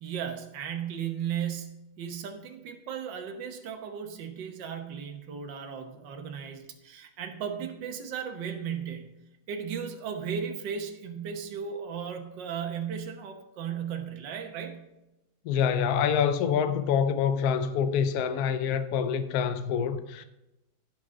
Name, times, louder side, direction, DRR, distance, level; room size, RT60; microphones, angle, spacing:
voice 1, 0.0-9.1 9.5-14.9, right 7 dB, 65° right, 1.7 m, -36 dB
voice 2, 15.5-20.2, left 7 dB, 75° left, 0.9 m, -26 dB
15.0 x 6.4 x 3.7 m
omnidirectional pair, 2.2 m